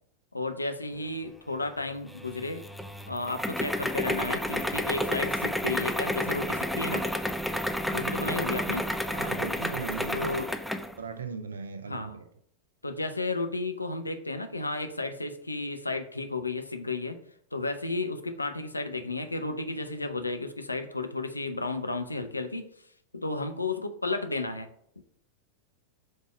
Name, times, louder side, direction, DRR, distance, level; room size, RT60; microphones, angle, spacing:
voice 1, 0.3-2.7 3.1-7.1 7.9-8.9 10.1-10.5 11.9-12.2 12.8-17.2 17.5-22.9 23.1-24.7, left 2 dB, 80° left, 7 dB, 0.6 m, -33 dB
sound 1, 2.1-10.9, left 1 dB, ahead, 0.4 m, -31 dB
voice 2, 7.8-8.3 9.1-10.5 11.0-12.3, right 5 dB, 70° right, 10 dB, 0.6 m, -38 dB
5.3 x 3.6 x 5.0 m, 0.69 s
figure-of-eight pair, 90°, 0 cm